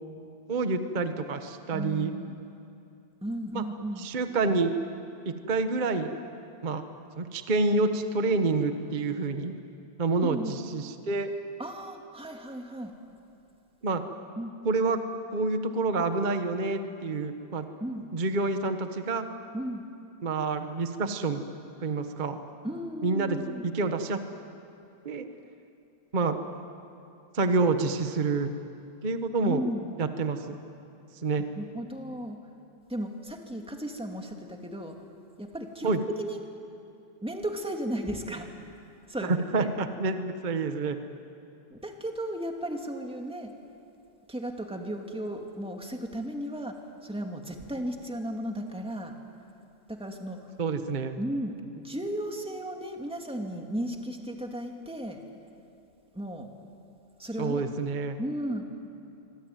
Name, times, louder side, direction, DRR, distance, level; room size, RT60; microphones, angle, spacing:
voice 1, 0.5-2.1 3.5-3.6 4.0-4.7 5.2-6.1 6.6-6.8 7.2-9.5 10.0-11.3 13.8-14.0 14.6-15.0 15.3-17.7 18.1-19.3 20.2-21.5 21.8-22.4 23.0-24.2 25.0-25.2 26.1-26.4 27.3-28.5 29.0-29.6 30.0-30.4 31.2-31.4 35.8-36.0 39.2-41.0 50.6-51.1 57.4-58.2, right 3 dB, 75° right, 7 dB, 0.4 m, -28 dB
voice 2, 1.7-2.5 3.2-4.1 10.2-10.5 11.6-12.9 14.4-14.5 17.8-18.1 19.5-19.8 22.6-23.7 29.4-30.0 31.4-32.4 32.9-35.0 35.4-36.4 37.2-38.5 39.1-39.7 41.7-43.5 44.3-46.7 47.0-49.1 49.9-50.4 51.2-55.2 56.1-56.5 57.2-57.7 58.2-58.6, right 1 dB, ahead, 2 dB, 1.8 m, -35 dB
25.0 x 24.5 x 9.3 m, 2.6 s
omnidirectional pair, 3.3 m